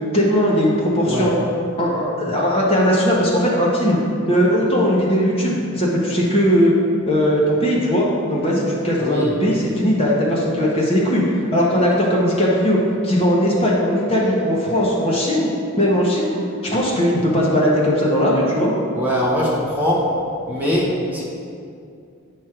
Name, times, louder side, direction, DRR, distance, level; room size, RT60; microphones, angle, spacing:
voice 1, 0.1-1.3 1.8-4.0 4.3-6.7 7.1-11.2 11.5-15.5 15.8-16.3 16.7-18.7, equal, 25° left, -4 dB, 1.0 m, -18 dB
voice 2, 9.0-9.3 18.9-20.2 20.5-21.2, equal, 10° right, -6 dB, 1.0 m, -21 dB
9.0 x 3.2 x 5.8 m, 2.5 s
head